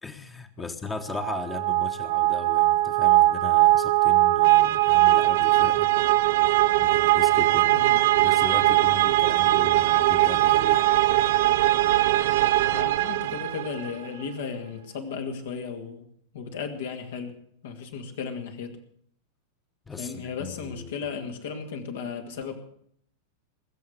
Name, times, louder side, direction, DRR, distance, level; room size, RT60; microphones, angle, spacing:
voice 1, 0.0-5.9 6.8-7.9 8.1-10.9 19.9-21.0, left 5 dB, 15° left, 9 dB, 1.4 m, -37 dB
sound 1, 1.1-13.9, right 17 dB, 55° right, 0.5 m, -21 dB
voice 2, 12.7-16.1 16.3-17.4 17.6-18.8 20.0-22.7, left 5 dB, 60° left, 5 dB, 2.1 m, -35 dB
19.5 x 7.8 x 8.2 m, 0.66 s
figure-of-eight pair, 90°, 0 cm